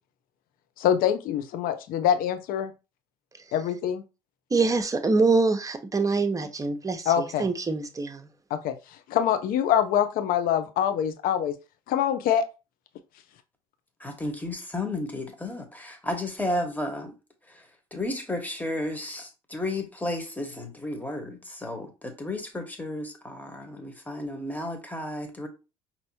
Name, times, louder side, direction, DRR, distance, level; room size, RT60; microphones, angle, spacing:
voice 1, 0.8-2.7 3.5-4.0 7.1-7.4 8.5-11.5 11.9-12.5, left 9 dB, 55° left, 0.7 m, -25 dB
voice 2, 4.5-7.1 7.4-8.2, right 3 dB, 20° right, 0.9 m, -24 dB
voice 3, 14.0-17.1 17.5-25.5, left 1 dB, 10° left, 1.4 m, -33 dB
5.3 x 2.9 x 2.8 m
hypercardioid pair, 60°, 17 cm